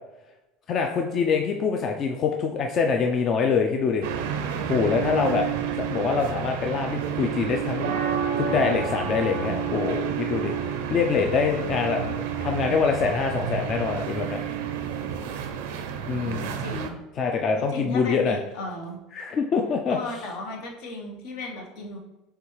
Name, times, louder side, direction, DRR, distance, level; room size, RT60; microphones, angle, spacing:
voice 1, 0.7-4.1 4.7-5.4 5.8-8.0 8.4-12.2 12.4-14.4 16.1-16.5 17.2-18.4 19.1-20.0, left 5 dB, 40° left, 3 dB, 0.4 m, -25 dB
sound 1, 4.0-16.9, right 8 dB, 85° right, 0.5 m, -30 dB
voice 2, 16.0-17.0 17.7-19.0 19.9-22.0, left 2 dB, 75° left, 1 dB, 0.9 m, -35 dB
6.5 x 2.3 x 3.1 m, 1.0 s
supercardioid pair, 125°, 0 cm